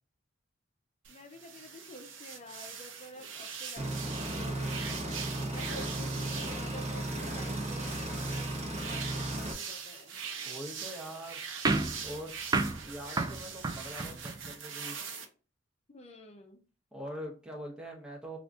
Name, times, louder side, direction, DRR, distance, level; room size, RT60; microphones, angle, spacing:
sound 1, 1.0-15.2, right 6 dB, 85° right, 0.7 m, -42 dB
voice 1, 1.1-8.5 8.9-10.2 15.9-16.6, left 1 dB, 35° left, 3 dB, 0.5 m, -49 dB
sound 2, 3.8-9.5, right 1 dB, 35° right, 0.9 m, -35 dB
voice 2, 5.7-6.4 10.5-11.4 12.0-12.3 12.8-15.0 16.9-18.4, equal, 5° right, -2 dB, 0.7 m, -43 dB
sound 3, 11.6-14.5, right 3 dB, 20° right, 0.3 m, -32 dB
5.0 x 2.5 x 2.3 m, 0.37 s
head